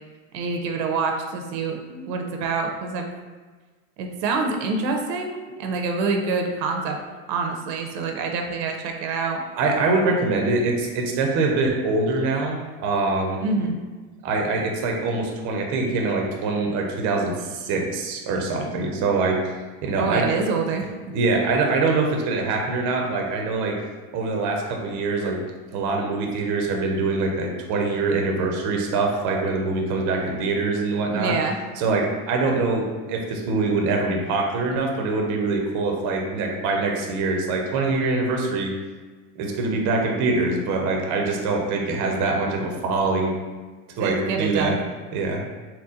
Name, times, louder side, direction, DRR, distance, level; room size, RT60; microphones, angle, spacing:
voice 1, 0.3-3.1 4.0-7.0 7.3-9.4 13.4-13.8 20.0-21.1 31.1-31.6 44.0-44.8, right 4 dB, 80° right, 3 dB, 0.8 m, -26 dB
voice 2, 9.6-13.4 14.2-19.5 19.8-20.3 21.1-23.8 24.1-25.4 25.7-31.4 31.8-38.7 39.4-43.3 44.0-44.8 45.1-45.4, right 3 dB, 40° right, 1 dB, 0.6 m, -24 dB
4.1 x 2.2 x 3.7 m, 1.4 s
supercardioid pair, 125°, 50 cm